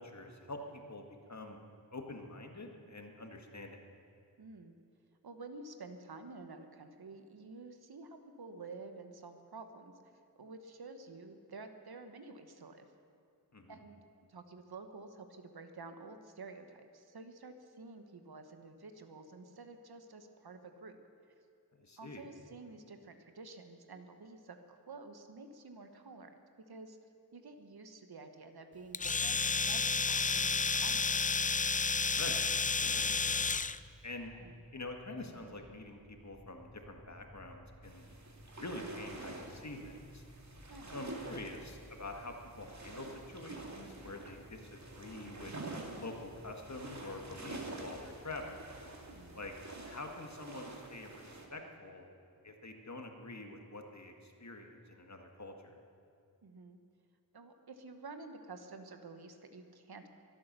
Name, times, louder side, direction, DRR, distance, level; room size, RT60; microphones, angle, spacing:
voice 1, 0.0-1.6 1.9-3.8 13.5-13.8 21.8-22.2 32.2-32.4 32.8-33.6 34.0-34.3 34.7-38.1 38.6-40.2 40.9-45.5 46.0-48.7 49.3-49.5 49.9-52.1 52.4-55.7, left 2 dB, 45° left, 3 dB, 1.9 m, -46 dB
voice 2, 4.4-4.7 5.2-12.9 13.7-14.0 14.3-21.0 22.0-26.4 26.7-27.0 27.3-29.4 29.7-31.2 34.3-34.6 40.7-41.0 49.1-49.5 56.4-56.8 57.3-60.1, right 3 dB, 75° right, 7 dB, 1.3 m, -50 dB
Domestic sounds home sounds, 28.9-33.8, left 4 dB, 25° left, 0.4 m, -31 dB
sound 1, 32.7-49.8, right 1 dB, 10° right, 3.7 m, -58 dB
sound 2, 37.8-51.5, right 2 dB, 45° right, 2.1 m, -48 dB
23.5 x 8.6 x 6.8 m, 2.5 s
wide cardioid pair, 60°, 37 cm